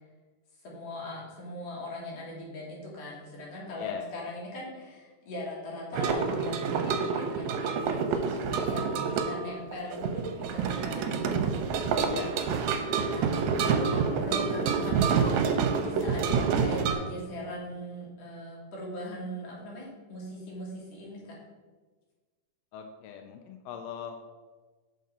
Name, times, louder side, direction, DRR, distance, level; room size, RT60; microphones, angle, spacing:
voice 1, 0.6-11.8 13.1-15.3 15.8-21.3, left 1 dB, 55° left, -4 dB, 2.7 m, -40 dB
sound 1, 5.9-16.9, right 5 dB, 75° right, 1.8 m, -28 dB
voice 2, 12.0-12.8 22.7-24.2, left 7 dB, 80° left, 4 dB, 1.5 m, -41 dB
6.5 x 4.3 x 5.2 m, 1.3 s
omnidirectional pair, 3.5 m